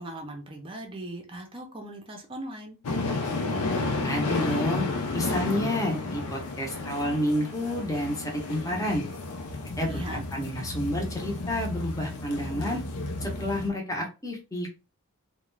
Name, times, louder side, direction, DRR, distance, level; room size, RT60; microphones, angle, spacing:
voice 1, 0.0-2.8 9.9-10.2, right 1 dB, 25° right, 0.5 m, -39 dB
sound 1, 2.8-13.7, left 2 dB, 85° left, 0.5 m, -32 dB
voice 2, 4.0-4.9 5.1-9.1 9.8-12.8 13.2-14.7, left 1 dB, 15° left, 0.7 m, -30 dB
2.4 x 2.1 x 3.1 m
head